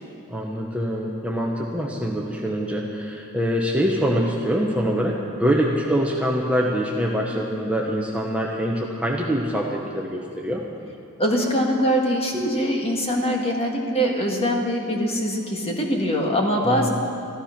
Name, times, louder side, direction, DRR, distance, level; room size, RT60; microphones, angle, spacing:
voice 1, 0.3-10.6 16.6-16.9, equal, 5° right, -2 dB, 1.0 m, -24 dB
voice 2, 11.2-16.9, equal, 25° left, 0 dB, 1.8 m, -23 dB
14.5 x 13.0 x 5.9 m, 2.6 s
head